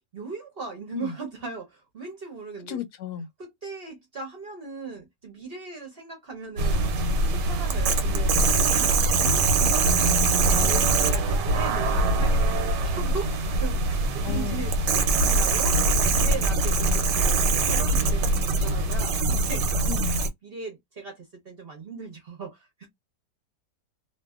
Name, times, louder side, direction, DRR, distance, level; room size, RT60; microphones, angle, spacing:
voice 1, 0.1-2.8 3.4-8.9 9.2-17.4 17.7-19.6 20.4-22.9, right 4 dB, 45° right, 0.9 m, -38 dB
voice 2, 2.7-3.3 14.2-14.7 19.9-20.2, left 8 dB, 75° left, 1.1 m, -34 dB
sound 1, 6.6-20.3, right 2 dB, 85° right, 1.3 m, -23 dB
2.7 x 2.6 x 2.3 m
omnidirectional pair, 1.8 m